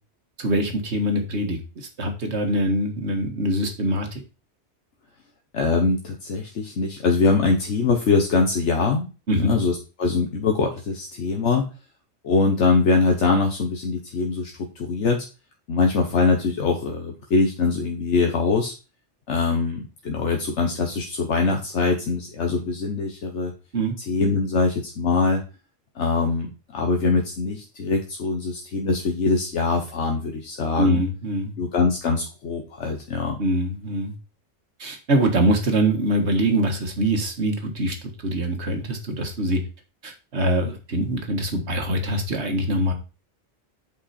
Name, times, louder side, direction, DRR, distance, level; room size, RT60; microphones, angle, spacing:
voice 1, 0.4-4.2 9.3-9.5 23.7-24.0 30.8-31.5 33.4-34.2 34.8-39.6 40.0-42.9, right 1 dB, 65° right, 4 dB, 1.8 m, -24 dB
voice 2, 5.5-9.1 9.4-11.7 12.2-15.2 15.7-18.7 19.3-23.5 24.1-25.4 25.9-31.0 31.6-33.4, left 4 dB, 75° left, 2 dB, 1.4 m, -23 dB
8.2 x 5.4 x 4.3 m, 0.32 s
omnidirectional pair, 1.2 m